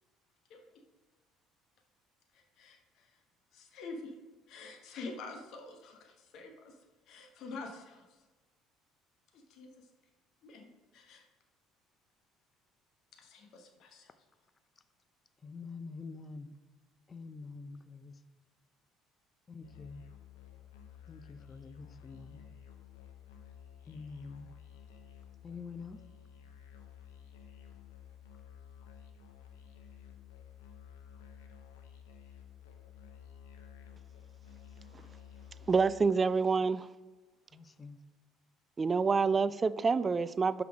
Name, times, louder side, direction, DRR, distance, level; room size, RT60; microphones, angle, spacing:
voice 1, 2.3-3.2 3.5-4.1 4.5-6.8 7.1-8.2 9.3-9.9 10.4-11.2 13.1-14.1, left 3 dB, 60° left, 1.2 m, -47 dB
voice 2, 15.4-16.5 17.1-18.1 19.5-20.0 21.1-22.4 23.9-24.5 25.4-26.0 37.5-38.0, left 4 dB, 30° left, 0.5 m, -46 dB
Musical instrument, 19.6-36.1, left 8 dB, 85° left, 0.7 m, -53 dB
voice 3, 35.7-36.9 38.8-40.6, right 4 dB, 30° right, 0.3 m, -27 dB
5.8 x 5.8 x 4.9 m
hypercardioid pair, 65°, 0 cm